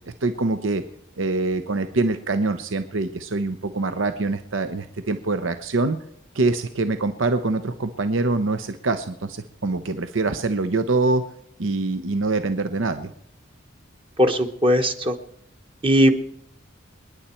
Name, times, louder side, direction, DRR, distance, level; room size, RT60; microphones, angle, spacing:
voice 1, 0.2-0.8 1.2-6.0 6.3-11.2 11.6-13.1, right 3 dB, 80° right, 9 dB, 0.8 m, -24 dB
voice 2, 14.2-15.1 15.8-16.1, equal, 25° right, 6 dB, 1.0 m, -18 dB
28.0 x 10.0 x 4.4 m, 0.72 s
head